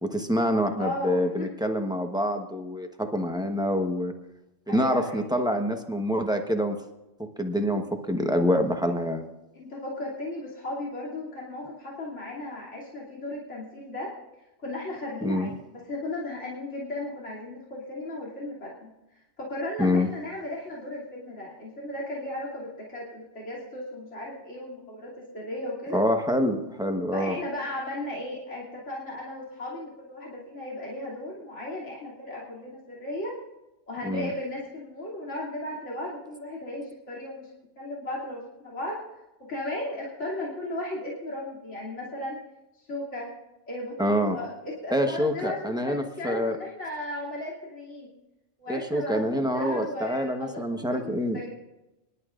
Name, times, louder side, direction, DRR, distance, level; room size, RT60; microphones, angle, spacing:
voice 1, 0.0-4.1 4.7-6.8 7.2-9.3 15.2-15.5 19.8-20.1 25.9-27.4 34.0-34.3 44.0-44.4 44.9-46.6 48.7-51.4, equal, 5° right, 4 dB, 1.0 m, -26 dB
voice 2, 0.7-1.5 4.7-5.3 9.5-14.1 14.6-18.9 19.4-26.0 27.1-33.3 33.9-37.5 37.8-39.0 39.4-42.4 42.8-43.3 43.7-48.1 48.6-51.5, left 1 dB, 70° left, -6 dB, 3.2 m, -36 dB
25.5 x 11.0 x 2.5 m, 0.96 s
omnidirectional pair, 1.3 m